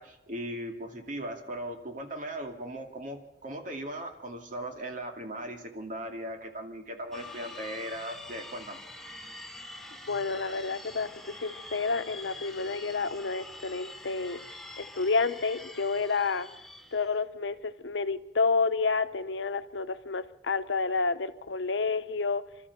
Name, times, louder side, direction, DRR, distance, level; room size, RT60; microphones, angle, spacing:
voice 1, 0.0-8.8 9.1-9.2 10.0-10.2, right 1 dB, 50° right, 2.4 m, -38 dB
sound 1, 7.1-17.2, left 2 dB, ahead, 1.1 m, -46 dB
voice 2, 10.1-14.4 14.8-16.5 16.9-22.4, left 4 dB, 90° left, 0.9 m, -30 dB
29.0 x 13.0 x 6.9 m
head